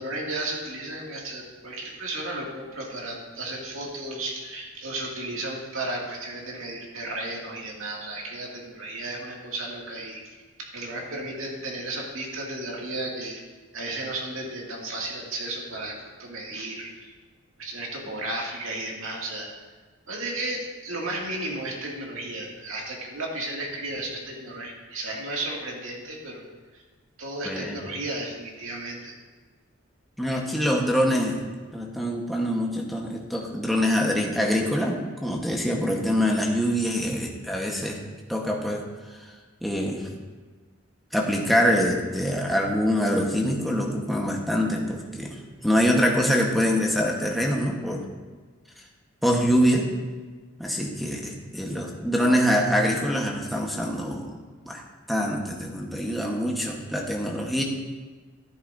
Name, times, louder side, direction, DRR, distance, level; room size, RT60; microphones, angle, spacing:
voice 1, 0.0-10.2 10.6-13.4 13.7-17.1 17.6-19.5 20.1-26.4 27.2-29.2, right 2 dB, 90° right, -2 dB, 2.3 m, -34 dB
voice 2, 27.4-27.8 30.2-31.4 31.7-38.0 38.3-38.8 39.6-40.1 41.1-48.0 49.2-49.9 50.6-54.3 54.6-54.8 55.1-57.6, equal, ahead, -1 dB, 1.1 m, -24 dB
12.5 x 11.0 x 2.7 m, 1.4 s
head